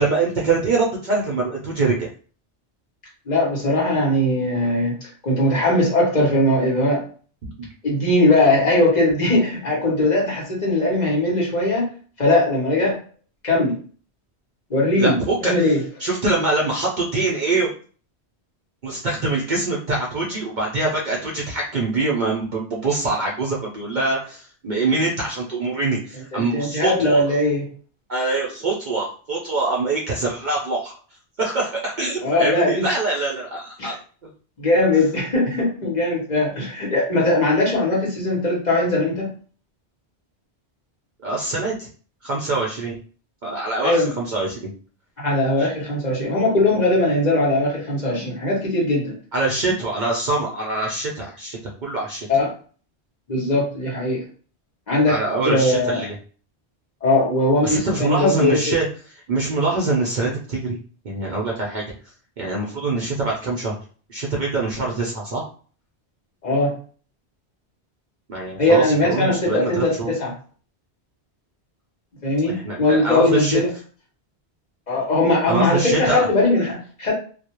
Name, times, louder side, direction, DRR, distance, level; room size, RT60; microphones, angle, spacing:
voice 1, 0.0-2.1 7.6-7.7 15.0-15.5 16.0-17.7 18.8-27.2 28.1-30.9 31.4-34.0 41.2-41.9 42.2-43.0 43.4-44.7 45.6-45.7 49.3-52.3 55.1-56.1 57.6-58.8 59.3-60.8 61.0-61.8 62.4-63.8 64.1-65.4 68.3-70.1 72.5-73.6 75.5-76.3, right 3 dB, 55° right, -3 dB, 0.5 m, -24 dB
voice 2, 3.3-7.0 7.8-11.9 12.2-13.0 13.4-13.8 14.7-15.8 26.3-27.7 32.2-32.8 33.8-33.9 34.6-39.3 43.8-44.1 45.2-49.2 52.3-52.5 53.3-54.2 54.9-55.2 55.4-56.0 57.0-58.8 66.4-66.8 68.6-70.3 72.2-73.7 74.9-77.1, left 2 dB, 45° left, -4 dB, 0.9 m, -20 dB
2.3 x 2.0 x 2.8 m, 0.41 s
omnidirectional pair, 1.1 m